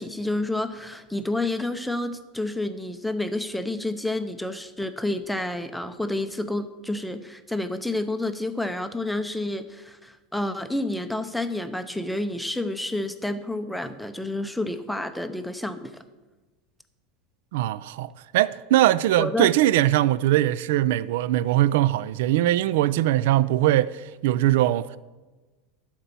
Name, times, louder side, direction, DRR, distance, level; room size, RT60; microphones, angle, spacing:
voice 1, 0.0-15.9 19.2-19.5, left 2 dB, ahead, 0.6 m, -29 dB
voice 2, 17.5-25.0, right 14 dB, 70° right, 0.3 m, -21 dB
11.5 x 4.4 x 6.8 m
supercardioid pair, 150°, 0 cm